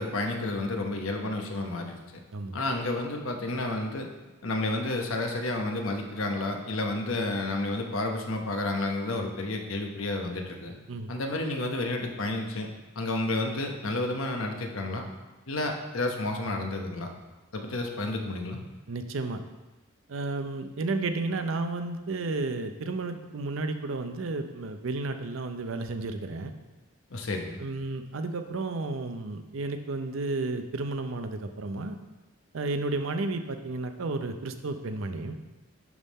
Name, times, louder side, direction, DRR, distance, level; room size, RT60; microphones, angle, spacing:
voice 1, 0.0-2.0 2.5-4.1 4.4-10.8 11.1-12.7 12.9-15.0 15.5-17.1 17.5-18.6 27.1-27.6, left 2 dB, 85° left, 3 dB, 0.9 m, -31 dB
voice 2, 18.9-19.4 20.1-26.5 27.6-32.0 32.5-35.4, right 3 dB, 75° right, 8 dB, 0.6 m, -32 dB
11.0 x 3.7 x 4.1 m, 1.1 s
head